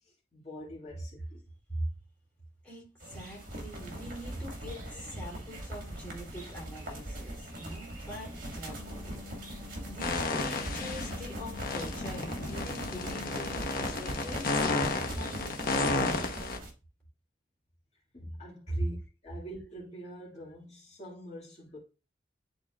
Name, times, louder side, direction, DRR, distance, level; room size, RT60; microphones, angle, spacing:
voice 1, 0.0-1.4 18.1-19.0 19.2-21.8, equal, 40° left, 2.0 m, -45 dB
voice 2, 2.6-9.4 9.9-14.6 15.1-16.1 18.7-18.8, equal, 10° left, 3.0 m, -42 dB
sound 1, 3.0-16.7, right 1 dB, 55° right, 1.8 m, -41 dB
Wind instrument woodwind instrument, 8.5-13.8, left 9 dB, 20° right, 1.8 m, -49 dB
sound 2, 10.0-11.2 11.5-16.6, left 3 dB, 55° left, 0.9 m, -32 dB
10.5 x 3.8 x 2.4 m
head